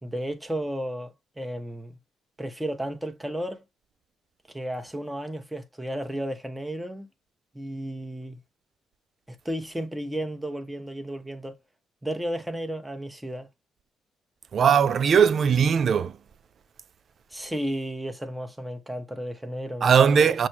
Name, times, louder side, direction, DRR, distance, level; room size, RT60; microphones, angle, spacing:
voice 1, 0.0-2.0 2.4-3.6 4.5-7.1 7.5-8.4 9.3-11.5 12.0-13.5 17.3-20.5, right 1 dB, 5° right, 1.0 m, -33 dB
voice 2, 14.5-16.1 19.8-20.5, right 7 dB, 50° right, 0.4 m, -19 dB
6.2 x 2.2 x 2.9 m
cardioid pair, 100°, 0 cm